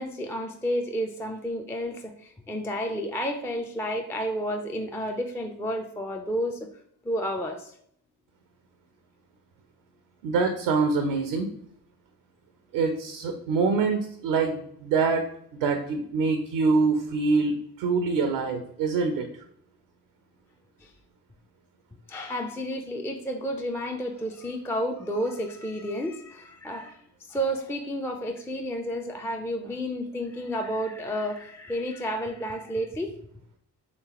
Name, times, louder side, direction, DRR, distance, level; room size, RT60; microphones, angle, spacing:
voice 1, 0.0-6.7 7.0-7.7 20.8-20.9 22.1-27.0 27.3-33.1, equal, 5° left, 3 dB, 0.3 m, -31 dB
voice 2, 10.2-11.5 12.7-15.2 15.5-19.3, right 4 dB, 80° right, 5 dB, 0.6 m, -25 dB
3.2 x 3.0 x 2.8 m, 0.68 s
hypercardioid pair, 40°, 44 cm